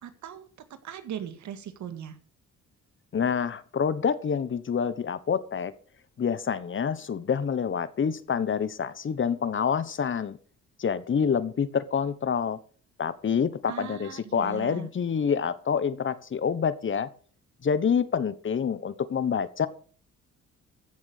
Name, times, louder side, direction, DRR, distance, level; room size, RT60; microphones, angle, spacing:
voice 1, 0.0-2.2 13.7-14.9, right 9 dB, 70° right, 2.0 m, -39 dB
voice 2, 3.1-5.7 6.2-10.4 10.8-12.6 13.0-17.1 17.6-19.7, left 7 dB, 40° left, 1.2 m, -27 dB
15.0 x 7.0 x 6.7 m
cardioid pair, 90°, 30 cm